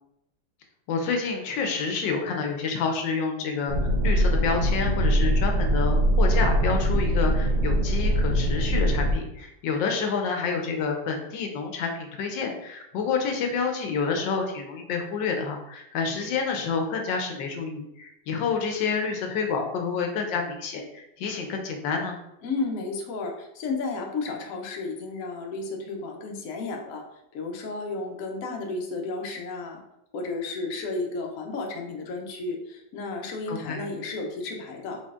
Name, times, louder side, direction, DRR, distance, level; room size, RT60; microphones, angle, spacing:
voice 1, 0.9-22.2 33.5-33.9, left 5 dB, 80° left, 3 dB, 1.4 m, -28 dB
sound 1, 3.7-9.1, equal, 60° right, 1.6 m, -22 dB
voice 2, 22.4-27.1 27.3-29.8 30.1-35.0, left 3 dB, 60° left, 1 dB, 0.9 m, -33 dB
4.3 x 4.0 x 2.4 m, 0.84 s
omnidirectional pair, 2.0 m